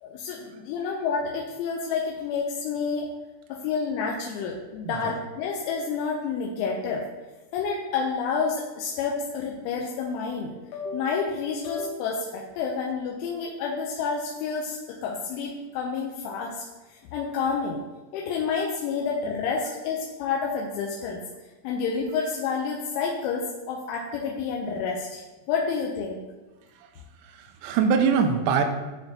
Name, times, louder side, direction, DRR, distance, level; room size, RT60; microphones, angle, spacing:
voice 1, 0.0-3.1 3.5-7.0 7.5-16.6 17.1-17.8 18.1-21.2 21.6-25.2 25.5-26.2, left 5 dB, 85° left, -1 dB, 2.8 m, -29 dB
voice 2, 4.9-5.2 26.8-26.9 27.2-28.6, right 6 dB, 85° right, 6 dB, 3.4 m, -24 dB
12.0 x 4.4 x 2.8 m, 1.2 s
omnidirectional pair, 6.0 m